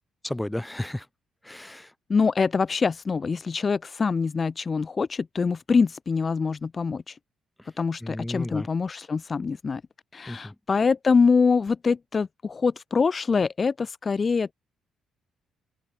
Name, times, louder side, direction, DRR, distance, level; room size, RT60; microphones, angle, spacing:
voice 1, 0.2-1.1 1.4-1.9 8.0-8.7 10.3-10.6, left 1 dB, 10° left, 3.5 m, -33 dB
voice 2, 2.1-7.2 7.8-9.8 10.1-14.5, left 5 dB, 35° left, 0.5 m, -24 dB
open air
cardioid pair, 90°, 0 cm